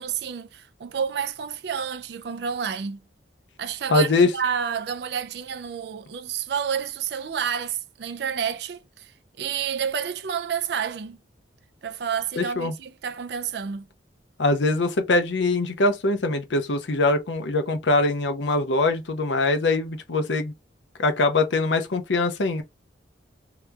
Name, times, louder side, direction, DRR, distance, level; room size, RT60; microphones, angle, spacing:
voice 1, 0.0-3.0 3.6-11.2 11.8-13.9, right 7 dB, 60° right, 0.4 m, -30 dB
voice 2, 3.9-4.3 12.4-12.7 14.4-20.5 21.0-22.6, left 2 dB, 75° left, 0.6 m, -22 dB
2.9 x 2.3 x 3.3 m
head